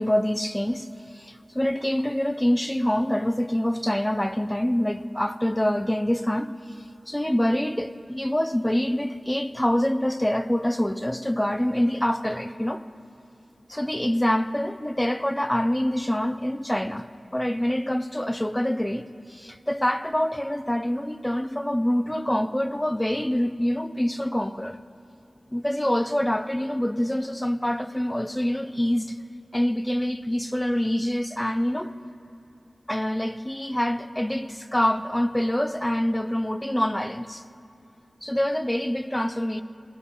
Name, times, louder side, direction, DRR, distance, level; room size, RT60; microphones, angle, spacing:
voice 1, 0.0-6.5 7.1-12.8 13.7-17.1 17.3-24.8 25.5-29.2 29.5-31.9 32.9-37.4 38.2-39.6, left 1 dB, 10° left, 0.3 m, -25 dB
18.5 x 9.6 x 3.3 m
wide cardioid pair, 80°, 0 cm